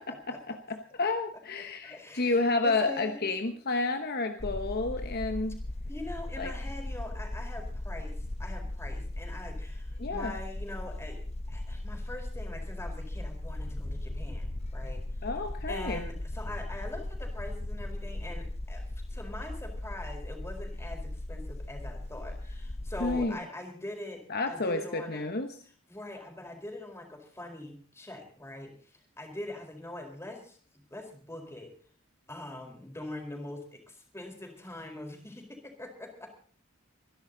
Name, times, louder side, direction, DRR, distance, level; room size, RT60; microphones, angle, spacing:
voice 1, 0.3-5.5 6.4-6.5 10.0-10.3 15.2-16.1 23.0-23.3 24.3-25.5, left 3 dB, 50° left, 6 dB, 1.2 m, -30 dB
voice 2, 1.8-3.3 5.9-15.3 15.7-18.8 19.1-25.3 25.9-30.6 30.9-31.7 32.3-36.4, left 1 dB, 15° left, 3 dB, 4.4 m, -43 dB
sound 1, 4.4-23.3, left 1 dB, 30° left, 0.9 m, -37 dB
25.0 x 11.0 x 4.0 m, 0.43 s
head